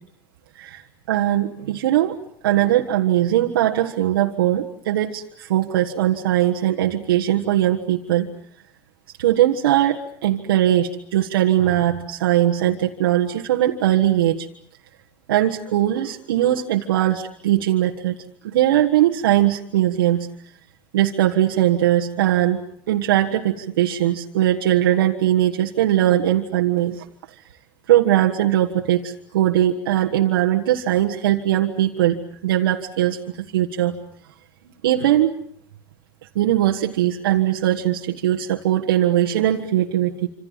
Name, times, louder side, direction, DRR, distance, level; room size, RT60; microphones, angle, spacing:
voice 1, 1.1-2.2 2.4-8.3 9.2-14.5 15.3-18.2 18.4-20.3 20.9-22.6 22.9-27.0 27.9-33.9 34.8-35.3 36.3-40.3, right 12 dB, 80° right, 1 dB, 1.5 m, -20 dB
27.0 x 26.5 x 7.3 m, 0.67 s
hypercardioid pair, 85°, 12 cm